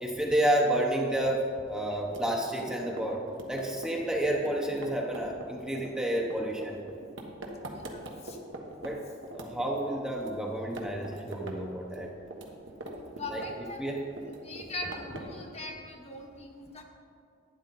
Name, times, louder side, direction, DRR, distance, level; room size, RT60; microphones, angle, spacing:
voice 1, 0.0-3.2 3.5-6.8 8.8-9.0 9.3-12.1 13.3-13.4 13.8-14.0, right 1 dB, 5° right, -1 dB, 0.8 m, -30 dB
sound 1, 2.0-8.9 9.2-10.3 10.6-11.6 11.8-13.7 14.0-15.4, right 2 dB, 70° right, 1.3 m, -42 dB
voice 2, 7.7-8.4 12.9-13.8 14.4-16.8, left 2 dB, 35° left, 2 dB, 1.2 m, -41 dB
11.5 x 9.5 x 4.1 m, 2.4 s
head